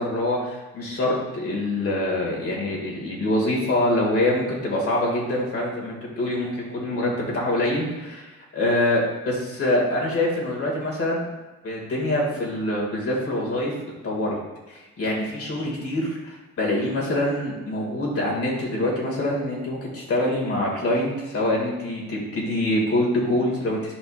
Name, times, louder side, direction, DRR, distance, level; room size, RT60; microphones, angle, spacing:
voice 1, 0.0-8.3 8.5-11.3 11.6-13.7 14.0-14.4 14.7-23.9, left 1 dB, 50° left, -3 dB, 2.1 m, -25 dB
8.0 x 5.3 x 2.5 m, 1.2 s
cardioid pair, 90°, 30 cm